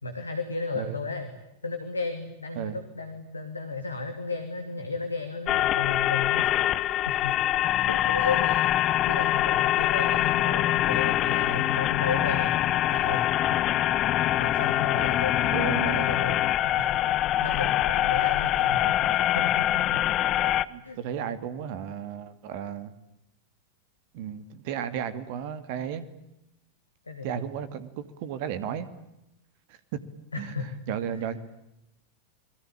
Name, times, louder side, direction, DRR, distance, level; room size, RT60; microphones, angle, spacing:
voice 1, 0.0-1.3 1.6-8.6 9.0-13.3 14.0-20.1 20.3-20.4 20.8-21.0 27.1-27.5 30.3-30.7 31.1-31.2, left 4 dB, 80° left, 8 dB, 2.8 m, -34 dB
sound 1, 5.5-20.7, left 13 dB, 35° left, 1.0 m, -24 dB
voice 2, 15.5-16.1 20.7-22.9 24.1-26.1 27.2-28.9 29.7-30.0 30.4-30.5 30.9-31.4, right 9 dB, 50° right, 13 dB, 2.4 m, -34 dB
29.5 x 22.5 x 8.7 m, 0.89 s
figure-of-eight pair, 90°, 0 cm